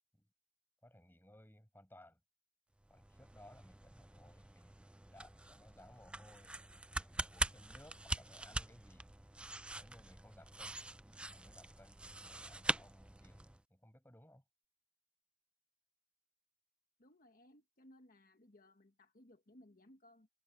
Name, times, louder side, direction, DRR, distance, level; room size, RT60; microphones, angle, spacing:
voice 1, 0.8-2.2 2.9-6.6 7.0-9.1 9.8-10.8 11.3-14.4, left 1 dB, 10° left, 6.3 m, -61 dB
sound 1, 2.8-13.6, right 2 dB, 5° right, 0.3 m, -44 dB
voice 2, 17.0-20.3, left 1 dB, 50° left, 1.4 m, -63 dB
head